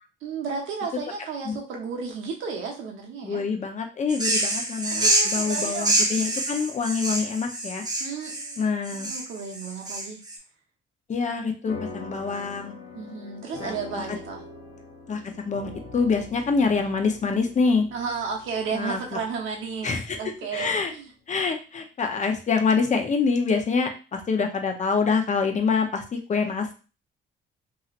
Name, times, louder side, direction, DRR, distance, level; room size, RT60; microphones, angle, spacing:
voice 1, 0.2-3.4 4.9-5.9 8.0-10.2 12.9-14.4 17.9-21.1, right 5 dB, 80° right, 0 dB, 0.9 m, -33 dB
voice 2, 3.2-7.8 8.6-9.1 11.1-12.7 13.6-14.1 15.1-15.2 15.5-17.9 18.7-19.2 19.8-20.2 20.5-20.9 21.3-26.8, left 5 dB, 35° left, 4 dB, 0.7 m, -26 dB
sound 1, 4.1-10.4, right 1 dB, 20° right, 0.8 m, -26 dB
sound 2, 11.7-20.4, left 2 dB, 70° left, 0.9 m, -43 dB
2.9 x 2.8 x 2.5 m, 0.33 s
cardioid pair, 90°, 20 cm